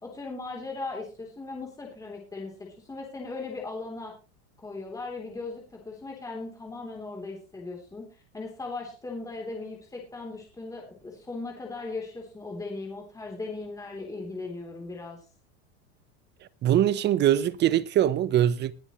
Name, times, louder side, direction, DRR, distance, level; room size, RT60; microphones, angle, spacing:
voice 1, 0.0-2.5 2.8-4.1 4.6-15.2, left 3 dB, 10° left, 3.4 m, -38 dB
voice 2, 16.6-18.7, right 11 dB, 30° right, 0.9 m, -22 dB
20.0 x 9.8 x 3.1 m
supercardioid pair, 130°, 33 cm